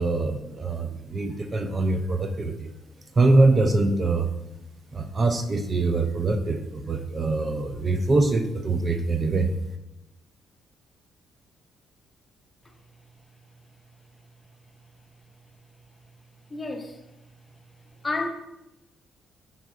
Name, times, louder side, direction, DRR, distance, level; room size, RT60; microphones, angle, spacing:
voice 1, 0.0-2.7 3.1-4.3 4.9-9.5, right 3 dB, 35° right, 6 dB, 0.4 m, -23 dB
voice 2, 16.5-17.0 18.0-18.3, left 3 dB, 25° left, 4 dB, 0.6 m, -30 dB
5.0 x 4.1 x 2.4 m, 0.91 s
cardioid pair, 90°, 0 cm